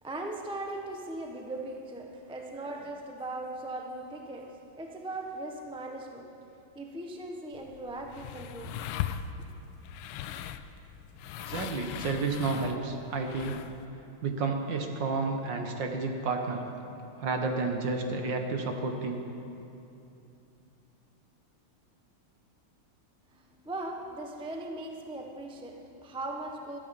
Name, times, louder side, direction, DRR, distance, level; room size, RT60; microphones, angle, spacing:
voice 1, 0.0-8.9 23.3-26.8, right 2 dB, 5° right, 2 dB, 0.6 m, -39 dB
sound 1, 7.5-13.9, left 10 dB, 90° left, 1.5 m, -39 dB
voice 2, 11.4-13.6 14.2-16.6 17.2-19.2, right 3 dB, 60° right, 4 dB, 1.9 m, -31 dB
20.5 x 13.0 x 5.3 m, 2.8 s
omnidirectional pair, 2.4 m